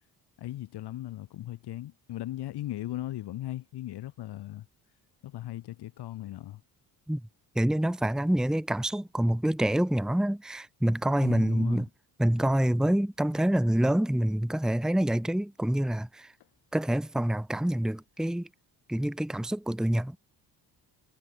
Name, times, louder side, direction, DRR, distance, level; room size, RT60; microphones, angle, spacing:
voice 1, 0.4-4.7 5.2-6.6 11.2-11.8, left 14 dB, 75° left, 3.0 m, -38 dB
voice 2, 7.5-11.9 12.2-16.3 16.7-18.5 18.9-20.2, right 1 dB, ahead, 1.1 m, -26 dB
cardioid pair, 105°, 41 cm